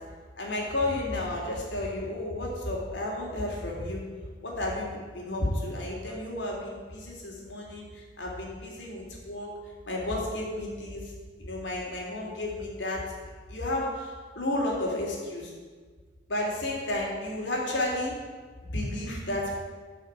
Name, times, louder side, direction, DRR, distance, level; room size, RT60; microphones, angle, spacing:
voice 1, 0.4-4.0 4.4-9.5 9.8-11.0 11.4-13.0 13.5-15.5 16.3-18.1 18.6-19.5, left 1 dB, 80° left, -2 dB, 3.5 m, -32 dB
12.5 x 6.4 x 8.3 m, 1.5 s
head